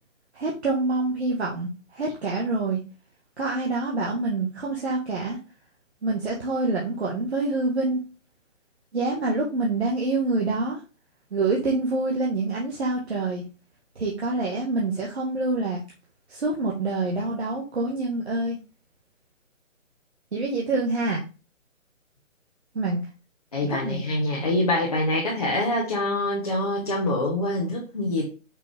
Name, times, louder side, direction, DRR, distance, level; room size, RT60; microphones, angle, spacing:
voice 1, 0.3-2.8 3.4-5.4 6.0-8.0 8.9-10.8 11.3-13.4 13.9-15.8 16.3-18.6 20.3-21.2 22.7-23.0 23.6-24.2, right 3 dB, 50° right, -4 dB, 1.7 m, -26 dB
voice 2, 23.5-28.2, left 1 dB, 30° left, -4 dB, 1.3 m, -25 dB
5.8 x 4.5 x 3.7 m, 0.32 s
hypercardioid pair, 180°, 40 cm